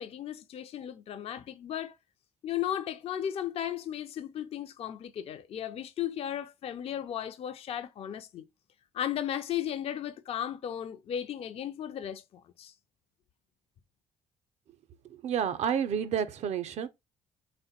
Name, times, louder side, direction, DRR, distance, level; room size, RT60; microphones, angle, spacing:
voice 1, 0.0-1.9 2.4-8.4 8.9-12.2 12.6-12.7, left 10 dB, 45° left, 0.4 m, -35 dB
voice 2, 15.2-16.9, right 8 dB, 55° right, 0.5 m, -29 dB
3.5 x 2.1 x 2.7 m
hypercardioid pair, 55°, 14 cm